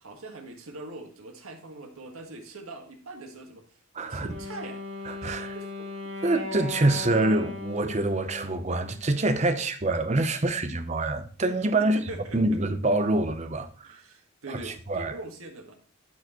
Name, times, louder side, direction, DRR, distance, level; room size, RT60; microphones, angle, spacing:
voice 1, 0.0-3.6 4.1-4.8 5.2-5.9 11.8-12.6 13.8-15.7, right 2 dB, 85° right, 1.7 m, -42 dB
voice 2, 3.9-4.4 5.1-5.6 6.2-12.0 12.3-14.0 14.5-15.2, right 2 dB, 30° right, 0.7 m, -26 dB
Wind instrument woodwind instrument, 4.2-9.3, left 2 dB, 65° right, 1.8 m, -38 dB
12.0 x 4.7 x 3.0 m
head